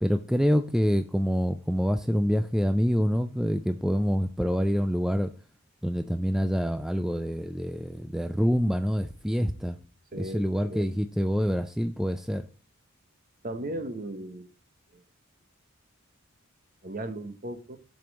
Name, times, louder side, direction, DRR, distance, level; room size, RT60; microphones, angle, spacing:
voice 1, 0.0-5.3 5.8-9.8 10.2-12.5, equal, ahead, 9 dB, 0.4 m, -26 dB
voice 2, 10.1-10.9 13.4-14.5 14.9-15.0 16.8-17.8, right 1 dB, 40° right, 9 dB, 1.1 m, -36 dB
7.7 x 5.2 x 7.4 m, 0.38 s
head